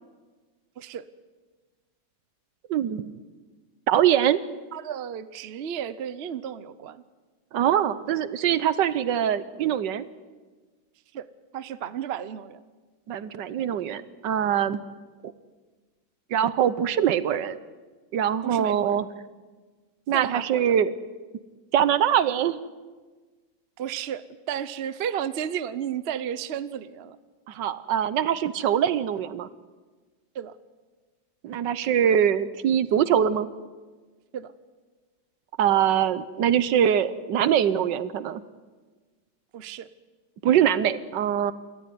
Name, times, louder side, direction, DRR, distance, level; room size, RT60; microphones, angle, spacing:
voice 1, 0.8-1.1 4.7-7.0 11.1-11.3 11.5-12.6 18.4-19.0 20.1-20.6 23.8-27.2 30.3-30.5 34.3-34.5 39.5-39.9, right 9 dB, 55° right, 14 dB, 0.7 m, -33 dB
voice 2, 2.7-3.0 3.9-4.4 7.5-10.0 13.1-14.8 16.3-17.6 18.1-19.1 20.1-20.9 21.7-22.6 27.5-29.5 31.4-33.5 35.6-38.4 40.4-41.5, right 9 dB, 70° right, 15 dB, 1.5 m, -23 dB
28.0 x 13.5 x 9.4 m, 1.4 s
omnidirectional pair, 2.1 m